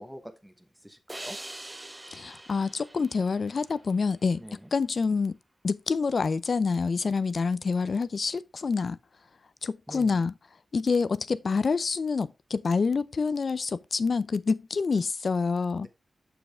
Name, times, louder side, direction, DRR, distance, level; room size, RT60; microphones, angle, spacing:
voice 1, 0.0-1.4 4.4-4.7 9.9-10.2 15.8-15.9, equal, 5° right, 1.1 m, -45 dB
sound 1, 1.1-4.4, right 1 dB, 20° right, 0.6 m, -44 dB
voice 2, 2.1-4.4 4.7-5.3 5.6-9.0 9.6-10.3 10.7-15.9, left 4 dB, 65° left, 0.5 m, -27 dB
6.9 x 6.2 x 3.4 m
cardioid pair, 60°, 0 cm